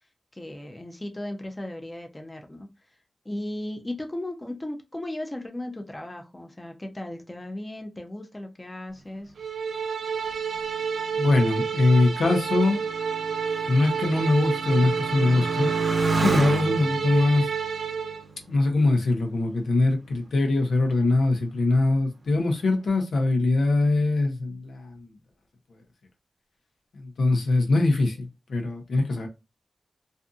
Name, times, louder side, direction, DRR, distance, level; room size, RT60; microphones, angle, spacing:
voice 1, 0.3-2.7 3.2-9.3, left 1 dB, 20° left, 0.5 m, -36 dB
sound 1, 9.4-18.2, right 6 dB, 85° right, 0.4 m, -29 dB
Motorcycle, 10.3-19.3 20.0-20.6, right 3 dB, 50° right, 0.7 m, -32 dB
voice 2, 11.1-12.8 13.7-15.7 16.2-17.5 18.5-25.1 26.9-29.3, left 2 dB, 90° left, 0.7 m, -22 dB
2.6 x 2.5 x 2.3 m
wide cardioid pair, 110°, 0 cm